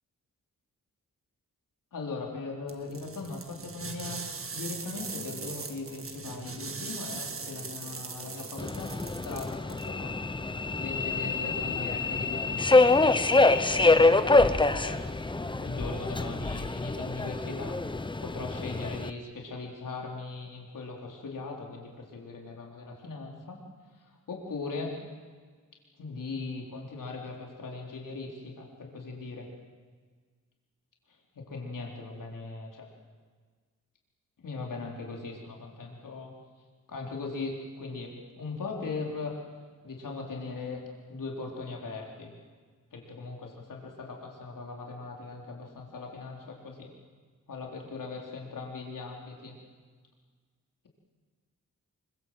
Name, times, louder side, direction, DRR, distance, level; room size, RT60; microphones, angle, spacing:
voice 1, 1.9-4.2 4.5-10.1 10.8-15.1 15.6-18.0 18.2-23.6 24.3-24.9 26.0-29.5 31.3-32.9 34.4-36.3 36.9-39.3 39.8-40.8 41.1-42.3 42.9-46.9 47.5-49.5, left 3 dB, 85° left, 0 dB, 4.1 m, -39 dB
sound 1, 2.7-9.9, right 4 dB, 45° right, 1.9 m, -40 dB
Subway metro underground, 8.6-19.1, left 3 dB, 15° left, 0.8 m, -25 dB
26.5 x 24.0 x 7.7 m, 1.5 s
wide cardioid pair, 170°, 31 cm